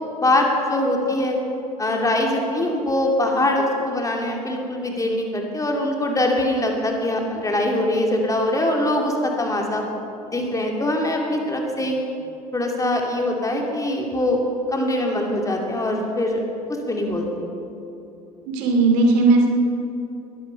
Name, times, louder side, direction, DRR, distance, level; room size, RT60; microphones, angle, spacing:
voice 1, 0.1-1.4 1.8-9.8 10.3-12.0 12.5-14.4 14.7-17.5, left 1 dB, 15° left, 1 dB, 3.0 m, -23 dB
voice 2, 18.5-19.5, right 3 dB, 60° right, 2 dB, 2.7 m, -16 dB
21.5 x 11.0 x 5.6 m, 2.8 s
figure-of-eight pair, 65°, 19 cm